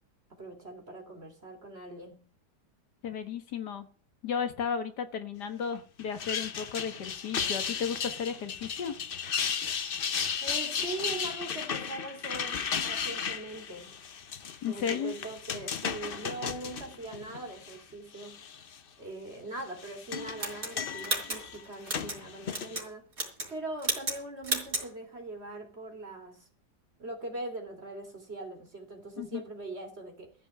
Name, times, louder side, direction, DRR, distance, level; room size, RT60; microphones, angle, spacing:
voice 1, 0.3-2.3 10.4-13.9 14.7-18.4 19.0-23.1 23.5-26.5 27.0-30.3, right 2 dB, 40° right, 3.5 m, -41 dB
voice 2, 3.0-3.9 4.2-9.0 14.6-15.1 29.2-29.4, left 7 dB, 80° left, 2.0 m, -34 dB
sound 1, 6.0-17.8 18.2-18.8 19.6-22.8, left 7 dB, 45° left, 0.7 m, -35 dB
sound 2, 20.4-22.2 22.5-22.9 23.1-23.5 23.8-24.2 24.4-24.9, right 2 dB, 55° right, 4.6 m, -33 dB
14.5 x 5.6 x 9.2 m
omnidirectional pair, 1.8 m